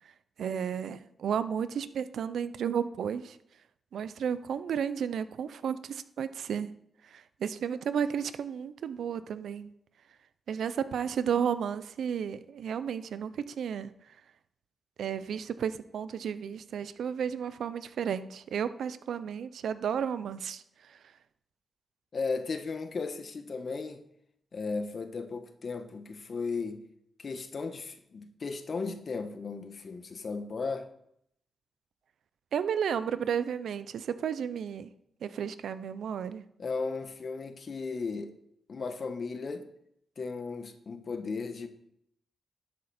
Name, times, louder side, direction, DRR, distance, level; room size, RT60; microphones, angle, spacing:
voice 1, 0.4-3.4 3.9-6.7 7.1-9.7 10.5-13.9 15.0-20.6 20.9-21.0 32.5-34.9 35.2-36.4, right 8 dB, 80° right, 14 dB, 0.6 m, -33 dB
voice 2, 22.1-24.0 24.5-26.8 27.2-30.9 36.6-38.4 38.7-39.7 40.2-41.7, left 4 dB, 55° left, 8 dB, 1.3 m, -35 dB
11.5 x 8.1 x 4.3 m, 0.73 s
cardioid pair, 70°, 0 cm